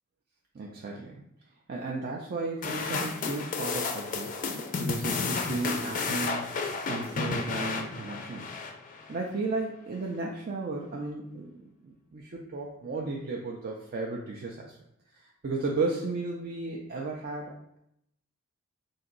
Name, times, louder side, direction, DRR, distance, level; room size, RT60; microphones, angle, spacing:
voice 1, 0.5-1.2 1.7-8.6 9.1-11.5 11.8-14.8 15.1-17.8, right 3 dB, 45° right, -1 dB, 0.4 m, -34 dB
sound 1, 2.6-9.2, left 4 dB, 35° left, 0.4 m, -32 dB
4.0 x 2.6 x 3.8 m, 0.76 s
head